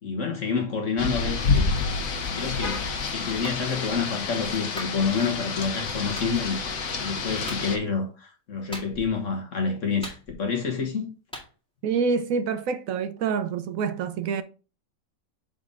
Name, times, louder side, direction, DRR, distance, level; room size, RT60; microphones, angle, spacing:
voice 1, 0.0-1.7 2.3-6.6 7.0-11.1, left 5 dB, 65° left, 1.6 m, -28 dB
Rain, 1.0-7.8, left 4 dB, 85° left, 1.5 m, -28 dB
Clapping, 3.4-3.6 4.8-5.0 6.2-6.3 7.5-7.7 8.7-9.2 10.0-10.6 11.3-11.5, equal, 5° left, 1.9 m, -39 dB
voice 2, 11.8-14.4, right 5 dB, 80° right, 1.1 m, -26 dB
6.9 x 3.9 x 3.7 m
omnidirectional pair, 1.4 m